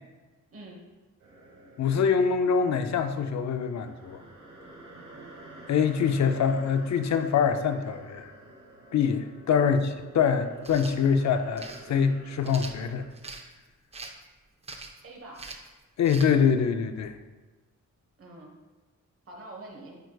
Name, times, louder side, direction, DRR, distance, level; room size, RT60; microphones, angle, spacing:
voice 1, 0.5-0.8 9.6-9.8 15.0-15.6 18.2-18.6 19.3-20.0, right 2 dB, 45° right, 0 dB, 1.0 m, -45 dB
sound 1, 1.2-13.1, right 1 dB, 90° right, 1.3 m, -49 dB
voice 2, 1.8-4.2 5.7-8.3 8.9-13.0 16.0-17.1, left 6 dB, 65° left, 8 dB, 0.5 m, -24 dB
sound 2, 10.6-11.0 11.6-11.8 12.4-13.4 13.9-14.2 14.6-15.0 15.3-15.7 16.0-16.3, right 3 dB, 20° right, 0.4 m, -42 dB
9.1 x 4.6 x 2.3 m, 1.2 s
wide cardioid pair, 150°, 30 cm